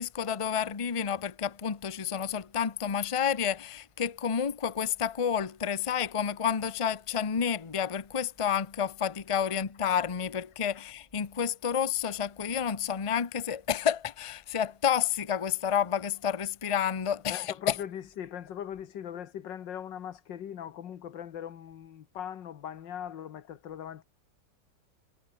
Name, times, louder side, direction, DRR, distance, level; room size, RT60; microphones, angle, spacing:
voice 1, 0.0-17.8, left 8 dB, 25° left, 0.7 m, -30 dB
voice 2, 17.3-24.0, left 9 dB, 85° left, 1.9 m, -40 dB
omnidirectional pair, 1.9 m